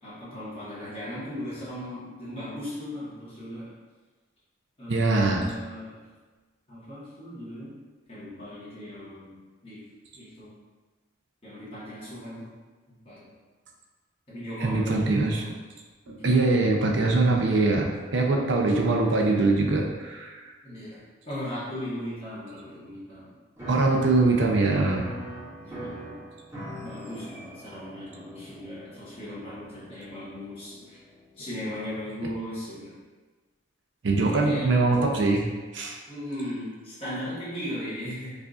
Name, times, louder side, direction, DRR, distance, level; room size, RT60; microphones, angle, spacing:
voice 1, 0.0-3.7 4.8-6.0 6.7-7.8 8.1-9.8 10.1-10.5 11.4-12.5 13.0-13.2 14.3-15.6 16.0-16.4 20.6-21.0 21.2-23.3 25.6-26.2 26.8-31.0 31.4-32.9 34.1-35.2 36.1-38.3, equal, 30° left, -11 dB, 1.3 m, -37 dB
voice 2, 4.9-5.4 14.6-15.4 16.1-17.9 18.1-20.4 23.7-25.0 34.0-35.4 35.7-36.0, right 3 dB, 65° right, 1 dB, 0.5 m, -22 dB
Piano, 23.6-32.0, equal, 15° right, 0.8 m, -42 dB
4.8 x 2.5 x 2.5 m, 1.3 s
head